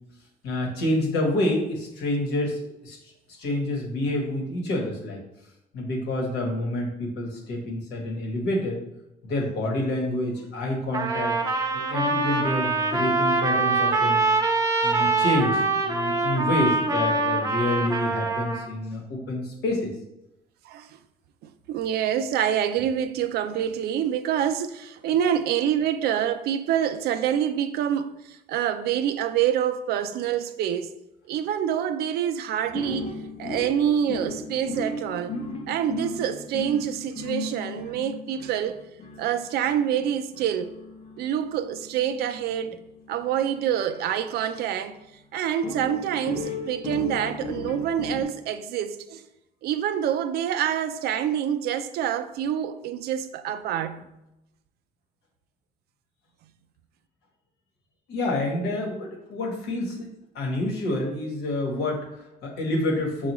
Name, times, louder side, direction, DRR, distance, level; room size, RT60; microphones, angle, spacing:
voice 1, 0.4-3.0 3.4-5.2 5.7-8.8 9.2-11.4 11.7-14.2 14.8-19.9 58.1-60.1 60.3-63.3, left 1 dB, 80° left, 1.2 m, -28 dB
Trumpet, 10.9-18.7, right 3 dB, 20° right, 0.6 m, -24 dB
voice 2, 21.7-30.9 31.3-33.1 33.4-35.3 35.7-38.8 39.2-40.7 41.2-42.8 43.1-45.0 45.3-49.2 49.6-54.1, right 9 dB, 70° right, 0.4 m, -26 dB
sound 1, 32.7-44.9 45.6-48.2, left 2 dB, 40° left, 0.6 m, -36 dB
5.7 x 2.3 x 3.0 m
cardioid pair, 110°, 17 cm